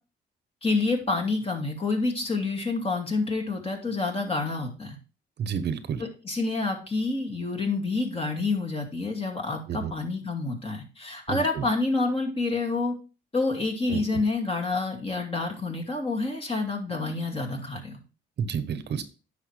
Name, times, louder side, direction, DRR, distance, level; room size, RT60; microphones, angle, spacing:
voice 1, 0.6-5.0 6.0-12.9 13.3-18.0, left 3 dB, 30° left, 3 dB, 2.4 m, -28 dB
voice 2, 5.4-6.0 9.7-9.9 11.3-11.6 13.9-14.2 18.4-19.0, right 7 dB, 60° right, 12 dB, 0.9 m, -30 dB
9.6 x 5.8 x 3.3 m, 0.34 s
cardioid pair, 90°, 20 cm